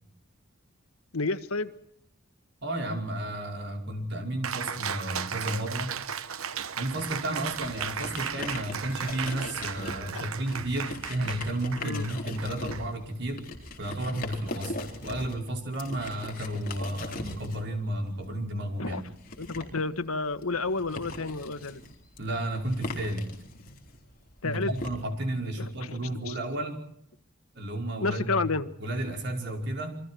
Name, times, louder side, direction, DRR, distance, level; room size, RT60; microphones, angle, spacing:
voice 1, 1.1-1.7 10.1-10.2 11.8-12.1 14.1-14.2 18.8-19.0 19.4-21.8 24.4-24.7 25.6-26.4 28.0-28.7, left 3 dB, 90° left, 11 dB, 1.6 m, -31 dB
voice 2, 2.6-6.0 6.8-13.5 13.8-14.8 15.0-19.0 22.2-23.3 24.4-26.8 27.6-28.5 28.8-30.0, right 1 dB, 55° right, 3 dB, 5.4 m, -32 dB
Cheering, 4.4-13.4, right 7 dB, 80° right, 1.1 m, -36 dB
sound 1, 6.8-24.9, left 2 dB, 40° left, 4.0 m, -41 dB
28.5 x 24.0 x 4.5 m, 0.68 s
head